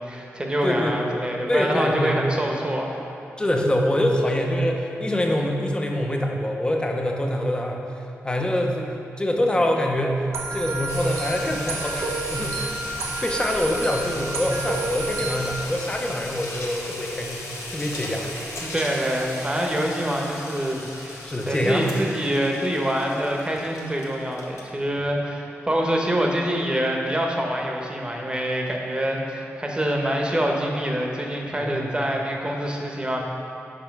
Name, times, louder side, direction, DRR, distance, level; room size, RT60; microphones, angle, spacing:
voice 1, 0.0-3.0 18.6-33.2, equal, 20° right, 0 dB, 1.0 m, -25 dB
voice 2, 0.6-1.0 1.5-2.2 3.4-7.8 8.2-10.3 10.5-18.3 21.2-22.0 31.5-31.9, left 1 dB, 15° left, 1 dB, 0.7 m, -25 dB
sound 1, 10.3-15.6, right 3 dB, 75° right, 0.7 m, -30 dB
sound 2, 10.9-24.8, left 1 dB, 70° left, 1.0 m, -37 dB
5.2 x 4.3 x 5.9 m, 2.9 s
cardioid pair, 70°, 5 cm